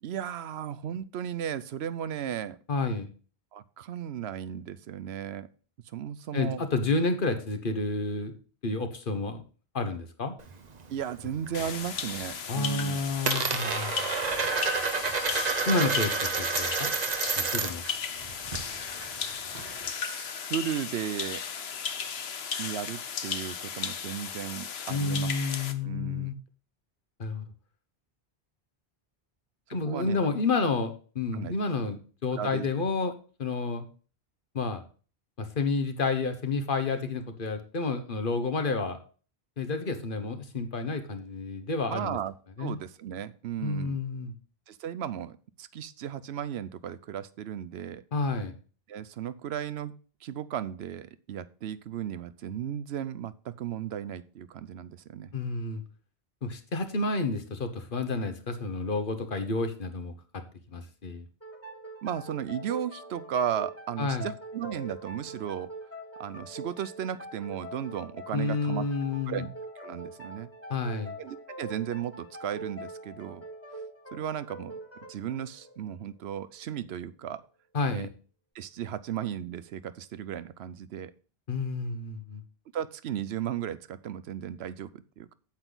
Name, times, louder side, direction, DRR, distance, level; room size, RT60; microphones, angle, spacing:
voice 1, 0.0-2.6 3.5-5.5 5.9-6.6 10.9-13.0 20.0-21.4 22.6-25.3 25.8-26.3 29.8-30.2 31.3-31.6 32.4-32.7 41.9-44.0 44.7-48.0 48.9-49.9 50.2-55.3 62.0-65.7 66.2-68.8 69.3-69.5 69.8-70.5 71.2-73.4 74.1-74.8 75.1-77.4 77.9-78.1 78.5-81.1 82.7-85.3, right 9 dB, 80° right, 15 dB, 0.9 m, -35 dB
voice 2, 2.7-3.1 6.3-8.3 8.6-9.4 9.7-10.3 12.5-14.1 15.7-16.9 17.4-17.8 24.9-26.3 27.2-27.4 29.7-33.1 33.4-33.8 34.5-34.8 35.4-39.0 39.6-42.2 42.6-42.8 43.6-44.3 48.1-48.5 55.3-55.8 56.4-60.1 60.7-61.2 64.0-64.3 68.3-69.4 70.7-71.1 77.7-78.1 81.5-82.4, left 3 dB, 55° left, 8 dB, 1.3 m, -30 dB
Coin (dropping), 10.4-11.5 11.9-12.4 12.6-17.9 18.2-19.9, right 4 dB, 45° right, 0.9 m, -30 dB
sound 1, 11.5-25.7, left 7 dB, 75° left, 1.1 m, -35 dB
sound 2, 61.4-76.7, right 1 dB, 15° left, 1.6 m, -44 dB
8.7 x 8.0 x 3.9 m, 0.38 s
omnidirectional pair, 1.1 m